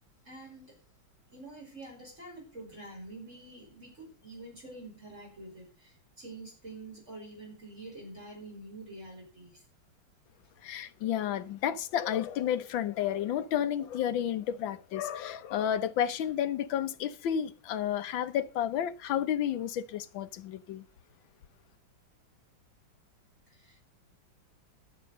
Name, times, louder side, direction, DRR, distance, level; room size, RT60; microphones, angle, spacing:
voice 1, 0.2-0.8 1.3-9.6 23.5-23.8, right 2 dB, 35° right, 5.7 m, -47 dB
voice 2, 10.6-20.8, left 10 dB, 70° left, 1.6 m, -31 dB
12.0 x 8.8 x 5.4 m
omnidirectional pair, 2.2 m